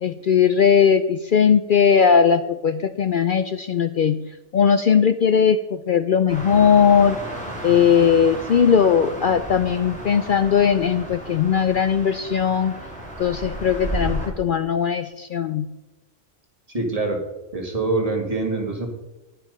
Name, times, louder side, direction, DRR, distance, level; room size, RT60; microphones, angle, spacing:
voice 1, 0.0-4.2 4.5-7.2 7.6-12.7 13.2-15.7, left 7 dB, 60° left, 11 dB, 0.5 m, -18 dB
sound 1, 6.3-14.3, right 1 dB, 5° left, 2.9 m, -33 dB
voice 2, 16.7-17.2 17.5-18.9, right 3 dB, 30° right, 2 dB, 2.0 m, -24 dB
10.5 x 10.0 x 5.3 m, 1.0 s
omnidirectional pair, 1.3 m